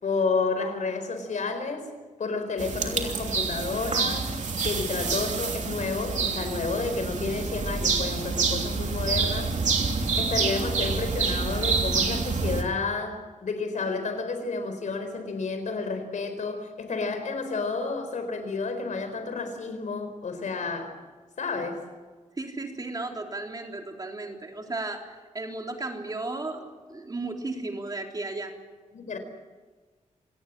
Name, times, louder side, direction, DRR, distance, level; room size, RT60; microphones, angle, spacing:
voice 1, 0.0-1.9 2.2-4.3 4.6-9.6 10.2-21.0 21.4-21.8 28.9-29.2, left 4 dB, 75° left, 8 dB, 4.4 m, -31 dB
sound 1, 2.6-12.6, right 4 dB, 70° right, 3.1 m, -27 dB
voice 2, 22.3-28.6, right 2 dB, 30° right, 2 dB, 3.7 m, -35 dB
28.0 x 18.5 x 7.6 m, 1.4 s
wide cardioid pair, 130°, 13 cm